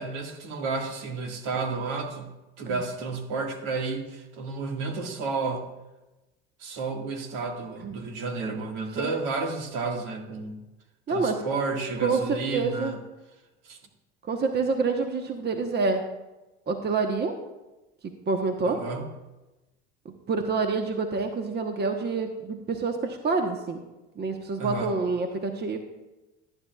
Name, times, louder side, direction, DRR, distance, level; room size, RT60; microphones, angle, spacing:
voice 1, 0.0-5.7 6.6-10.6 11.1-13.0 13.6-13.8 18.6-19.1 24.6-25.0, right 4 dB, 70° right, 2 dB, 1.9 m, -31 dB
voice 2, 11.1-11.4 12.0-12.9 14.3-16.0 16.7-17.3 18.3-18.8 20.0-23.8 24.2-25.8, right 4 dB, 30° right, 5 dB, 1.1 m, -27 dB
14.5 x 9.9 x 2.4 m, 1.0 s
hypercardioid pair, 85°, 32 cm